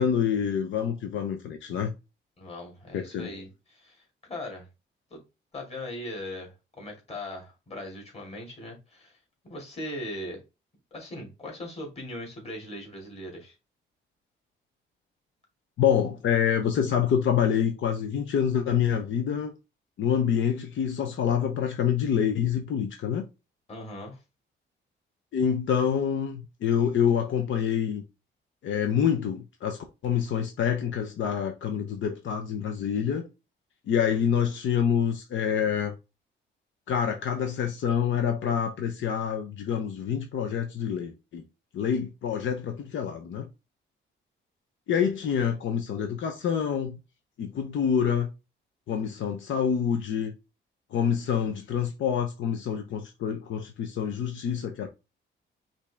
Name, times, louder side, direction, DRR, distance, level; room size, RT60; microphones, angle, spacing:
voice 1, 0.0-1.9 2.9-3.3 15.8-19.5 20.0-23.3 25.3-28.0 28.6-33.3 33.9-35.9 36.9-41.4 41.7-43.5 44.9-47.0 47.4-48.3 48.9-50.3 50.9-54.9, left 8 dB, 70° left, 0.7 m, -27 dB
voice 2, 2.4-4.7 5.1-5.2 5.5-9.2 9.4-10.4 10.9-13.5 23.7-24.2, left 1 dB, 30° left, 2.3 m, -39 dB
5.2 x 2.7 x 3.4 m
cardioid pair, 125°, 21 cm